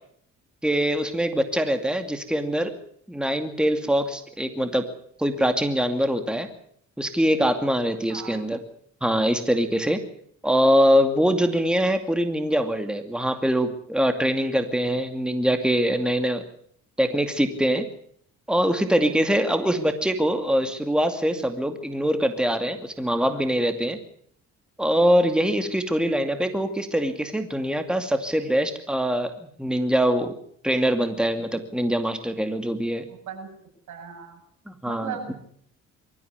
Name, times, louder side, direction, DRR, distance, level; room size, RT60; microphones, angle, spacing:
voice 1, 0.6-2.7 3.1-4.9 5.2-6.5 7.0-8.6 9.0-10.0 10.4-16.4 17.0-17.9 18.5-24.0 24.8-30.3 30.6-33.1 34.7-35.3, equal, 5° right, 7 dB, 2.4 m, -23 dB
voice 2, 8.1-8.4 33.1-33.5 33.9-34.4 34.8-35.3, right 7 dB, 75° right, 4 dB, 7.8 m, -38 dB
23.5 x 14.5 x 9.7 m, 0.66 s
cardioid pair, 90°, 30 cm